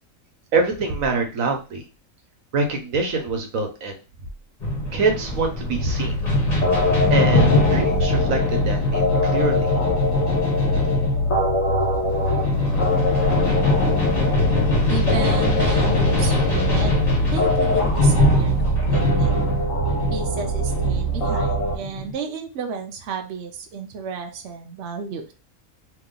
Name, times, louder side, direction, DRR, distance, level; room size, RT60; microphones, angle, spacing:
voice 1, 0.5-1.8 2.5-4.0 4.9-6.2 7.1-10.0, right 3 dB, 85° right, 3 dB, 1.3 m, -25 dB
sound 1, 4.6-22.1, left 1 dB, 30° left, 1.2 m, -23 dB
sound 2, 5.8-21.8, left 1 dB, 85° left, 1.4 m, -23 dB
voice 2, 14.9-17.0 17.3-19.3 20.1-25.3, right 5 dB, 65° right, 4 dB, 0.9 m, -32 dB
3.1 x 2.9 x 3.7 m, 0.32 s
omnidirectional pair, 1.4 m